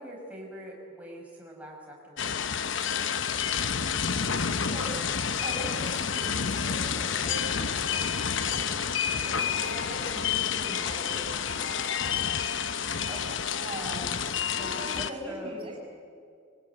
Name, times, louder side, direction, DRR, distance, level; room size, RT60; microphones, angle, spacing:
voice 1, 0.0-2.4 13.1-13.4 14.6-15.8, equal, 5° right, -2 dB, 5.7 m, -43 dB
sound 1, 2.2-15.1, left 7 dB, 65° left, 1.0 m, -29 dB
voice 2, 5.4-8.8 9.2-11.7 13.6-14.3 14.7-15.7, right 1 dB, 25° right, -1 dB, 6.7 m, -42 dB
24.0 x 20.0 x 9.5 m, 2.3 s
head